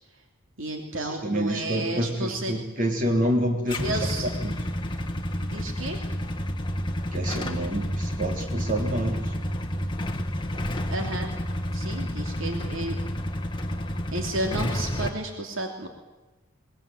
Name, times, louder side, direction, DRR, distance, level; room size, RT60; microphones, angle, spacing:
voice 1, 0.6-2.6 3.8-4.3 5.4-6.1 10.9-11.3 11.7-13.0 14.1-15.9, right 2 dB, 70° right, 3 dB, 2.9 m, -32 dB
voice 2, 1.2-3.8 4.2-4.5 7.1-9.2, right 1 dB, 40° right, 2 dB, 3.7 m, -27 dB
Motorcycle / Engine starting / Idling, 3.7-15.1, equal, 25° left, 1.5 m, -30 dB
21.5 x 20.5 x 9.2 m, 1.1 s
head